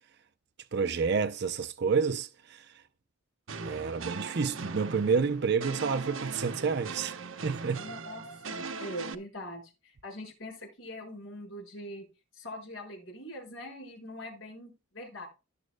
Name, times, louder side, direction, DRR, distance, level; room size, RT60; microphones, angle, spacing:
voice 1, 0.7-2.7 3.6-7.2 7.4-7.8, right 5 dB, 55° right, 0.6 m, -29 dB
sound 1, 3.5-9.2, right 4 dB, 75° right, 1.0 m, -39 dB
voice 2, 7.8-12.1 12.3-15.3, equal, 70° left, 5.8 m, -43 dB
17.5 x 7.6 x 2.2 m
head